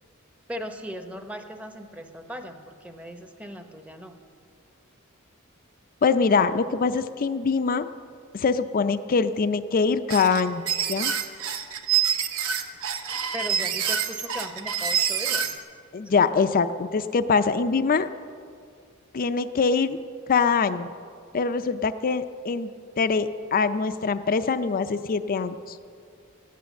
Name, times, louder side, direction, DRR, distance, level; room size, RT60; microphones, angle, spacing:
voice 1, 0.5-4.1 13.3-15.5, equal, 5° right, 6 dB, 0.9 m, -38 dB
voice 2, 6.0-7.9 8.3-11.1 15.9-18.1 19.1-20.0 20.3-20.9 21.3-22.7 23.0-25.8, left 5 dB, 40° left, 11 dB, 0.5 m, -23 dB
sound 1, 10.1-15.6, right 8 dB, 75° right, 1.0 m, -26 dB
14.5 x 10.0 x 7.0 m, 2.2 s
head